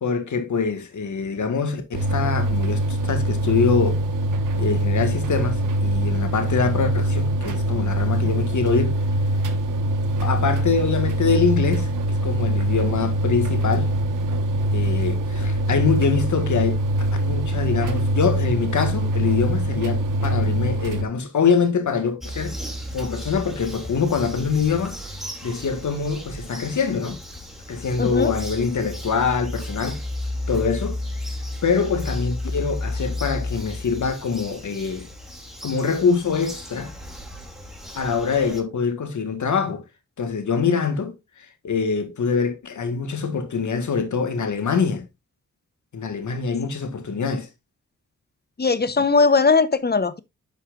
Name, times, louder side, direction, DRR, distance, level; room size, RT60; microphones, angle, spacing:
voice 1, 0.0-4.0 4.6-8.9 10.2-11.9 12.2-13.9 14.7-16.8 17.2-22.6 22.9-25.0 25.4-27.2 27.7-30.0 30.5-31.0 31.6-35.1 35.6-36.9 38.0-39.8 40.2-41.2 41.6-45.1 45.9-47.5, left 5 dB, 70° left, 1.8 m, -24 dB
sound 1, 1.9-21.0, right 1 dB, 90° right, 1.3 m, -23 dB
Bird vocalization bird call bird song, 22.2-38.6, left 1 dB, ahead, 2.7 m, -33 dB
voice 2, 28.0-28.3 48.6-50.2, left 4 dB, 30° left, 0.9 m, -19 dB
11.0 x 5.7 x 2.5 m
cardioid pair, 70°, 31 cm